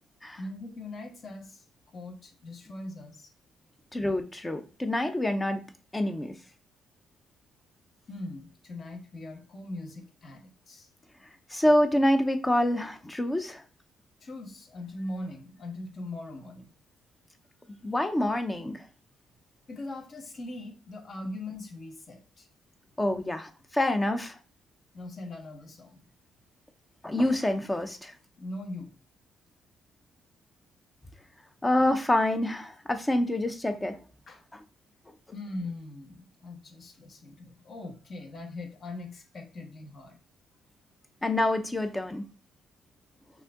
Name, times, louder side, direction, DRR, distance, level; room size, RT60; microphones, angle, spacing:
voice 1, 0.4-1.6 1.9-3.3 8.1-10.9 14.2-16.7 17.7-17.8 19.7-22.5 24.9-26.0 28.4-28.9 34.3-34.4 35.3-40.2, left 2 dB, 45° left, 1.3 m, -41 dB
voice 2, 3.9-5.6 5.9-6.3 11.5-13.6 17.8-18.8 23.0-24.4 27.0-28.1 31.6-34.0 41.2-42.2, left 1 dB, 15° left, 0.6 m, -26 dB
5.5 x 2.6 x 3.6 m
cardioid pair, 90°, 0 cm